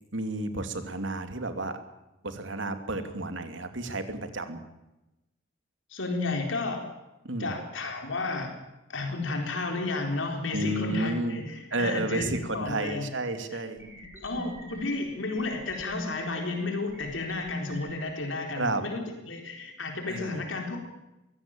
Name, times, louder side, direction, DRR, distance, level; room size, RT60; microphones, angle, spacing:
voice 1, 0.1-1.8 2.2-4.6 7.2-7.6 10.5-11.4 11.7-13.8 14.4-14.5 18.5-18.8 20.1-20.4, right 2 dB, 75° right, 8 dB, 2.6 m, -31 dB
voice 2, 5.9-6.8 7.4-8.5 8.9-13.1 13.5-13.6 14.2-20.8, left 3 dB, 85° left, 3 dB, 4.0 m, -32 dB
sound 1, 13.8-14.8 15.3-16.4 16.9-18.0, equal, 10° right, 6.6 m, -42 dB
23.5 x 16.5 x 8.9 m, 0.98 s
head